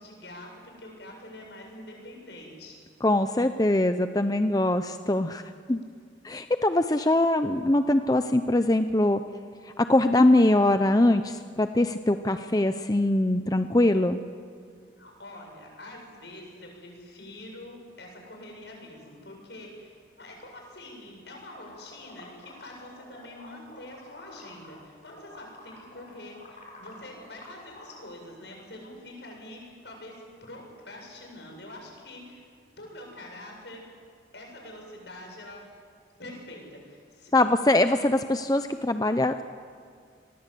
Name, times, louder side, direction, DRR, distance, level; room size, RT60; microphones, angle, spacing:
voice 1, 0.0-2.8 15.0-32.4 32.8-33.8 34.3-35.7 36.2-37.3, left 1 dB, 70° left, 1 dB, 7.9 m, -45 dB
voice 2, 3.0-5.4 5.7-5.8 6.2-9.2 9.8-14.2 37.3-39.4, left 1 dB, 20° left, 9 dB, 0.6 m, -22 dB
sound 1, 21.5-24.8 25.1-28.0, left 1 dB, 45° left, 5.6 m, -49 dB
30.0 x 21.5 x 8.5 m, 2.1 s
head